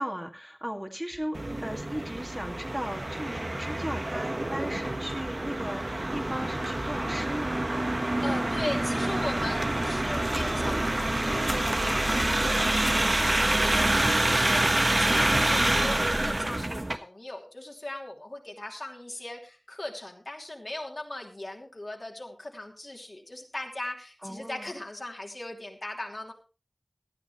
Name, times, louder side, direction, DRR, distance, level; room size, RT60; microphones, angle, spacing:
voice 1, 0.0-7.7 15.6-16.0 24.2-24.7, equal, 15° right, 2 dB, 2.2 m, -37 dB
sound 1, 1.3-17.0, right 1 dB, 45° right, 1.3 m, -27 dB
voice 2, 8.2-26.3, left 1 dB, 55° left, 1 dB, 3.0 m, -38 dB
18.5 x 12.0 x 3.2 m, 0.32 s
wide cardioid pair, 45°, 0 cm